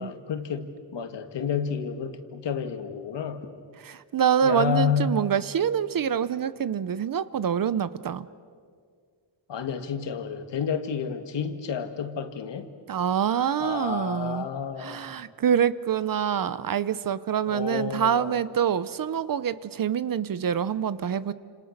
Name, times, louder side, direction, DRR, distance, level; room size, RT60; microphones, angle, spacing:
voice 1, 0.0-3.5 4.4-5.2 9.5-12.7 13.6-15.1 17.5-18.4, left 7 dB, 60° left, 8 dB, 2.0 m, -30 dB
voice 2, 3.8-8.3 12.9-14.5 14.8-21.3, right 8 dB, 45° right, 16 dB, 0.7 m, -26 dB
30.0 x 27.5 x 6.6 m, 2.1 s
wide cardioid pair, 175°, 47 cm